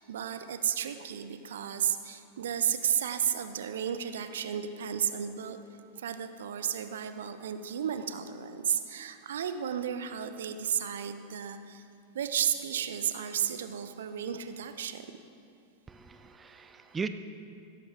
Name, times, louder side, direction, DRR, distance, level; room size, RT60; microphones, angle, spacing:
voice 1, 0.0-5.6 6.0-11.8 12.1-15.0, right 9 dB, 60° right, 9 dB, 0.7 m, -33 dB
voice 2, 15.9-17.1, right 5 dB, 15° right, 10 dB, 0.5 m, -38 dB
16.0 x 14.0 x 3.5 m, 2.6 s
figure-of-eight pair, 90°, 0 cm